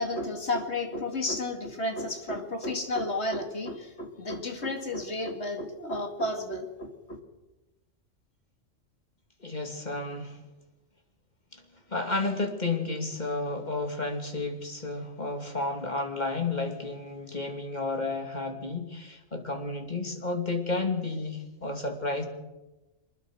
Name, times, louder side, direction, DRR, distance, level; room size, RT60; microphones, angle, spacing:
voice 1, 0.0-7.2, left 2 dB, 55° left, 5 dB, 2.7 m, -32 dB
voice 2, 9.4-10.4 11.5-11.6 11.9-22.3, left 3 dB, 35° left, 4 dB, 2.8 m, -32 dB
23.5 x 21.0 x 6.4 m, 1.0 s
omnidirectional pair, 1.3 m